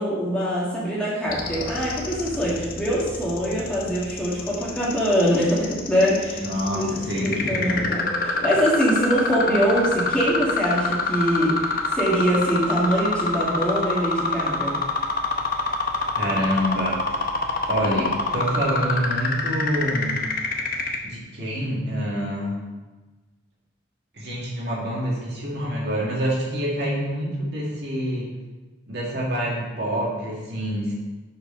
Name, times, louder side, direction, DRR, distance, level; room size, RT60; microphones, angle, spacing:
voice 1, 0.0-6.4 6.8-6.9 7.5-11.6 11.9-14.8, equal, 5° left, -8 dB, 1.9 m, -23 dB
sound 1, 1.3-21.0, left 4 dB, 45° left, 0.8 m, -26 dB
voice 2, 6.4-7.8 16.2-17.0 17.7-20.2 21.0-22.6 24.1-28.3 28.9-30.9, equal, 55° right, -5 dB, 2.0 m, -26 dB
6.5 x 4.8 x 5.6 m, 1.2 s
head